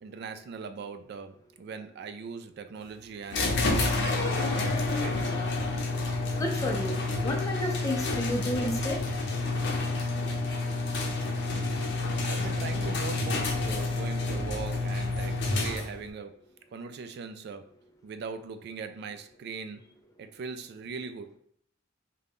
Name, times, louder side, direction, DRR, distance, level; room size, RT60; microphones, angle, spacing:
voice 1, 0.0-3.7 3.9-5.2 12.2-16.4 16.7-17.7 18.0-19.9 20.2-21.4, right 5 dB, 55° right, 0.3 m, -40 dB
sound 1, 3.3-16.1, left 2 dB, 60° left, 0.6 m, -29 dB
voice 2, 6.3-6.9 7.2-9.0, left 1 dB, 15° left, 0.5 m, -31 dB
3.7 x 2.2 x 3.5 m
head